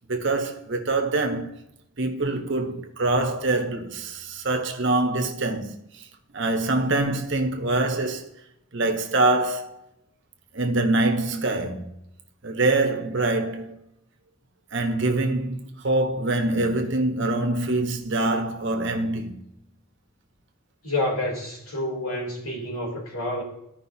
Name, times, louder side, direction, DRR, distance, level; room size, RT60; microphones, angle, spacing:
voice 1, 0.1-1.6 2.0-6.1 6.3-8.3 8.7-9.8 10.5-11.9 12.4-13.7 14.7-19.5, right 2 dB, 55° right, 1.2 m, -24 dB
voice 2, 20.8-23.4, left 1 dB, 90° left, 3.2 m, -28 dB
15.0 x 5.3 x 2.8 m
head